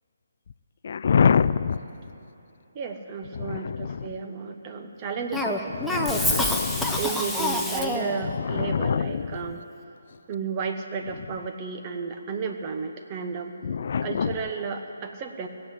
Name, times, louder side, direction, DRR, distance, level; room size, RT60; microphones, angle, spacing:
voice 1, 0.8-1.8 3.3-4.2 5.7-7.0 8.2-9.4 13.6-14.4, left 6 dB, 55° left, 15 dB, 0.3 m, -25 dB
voice 2, 2.7-9.6 10.3-13.5 14.0-15.5, right 5 dB, 30° right, 5 dB, 1.1 m, -33 dB
Cough, 5.3-8.3, left 1 dB, ahead, 0.8 m, -26 dB
18.0 x 7.7 x 8.3 m, 3.0 s
figure-of-eight pair, 150°, 0 cm